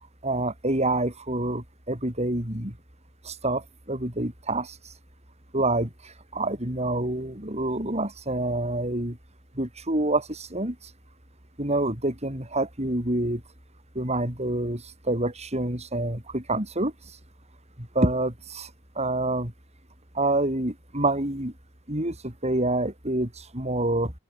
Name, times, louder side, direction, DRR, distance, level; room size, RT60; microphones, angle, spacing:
voice 1, 0.2-2.8 3.2-4.9 5.5-9.2 9.5-10.9 11.6-13.4 13.9-17.2 17.8-19.5 20.1-21.5 21.9-24.1, right 2 dB, 30° right, 6.3 m, -27 dB
head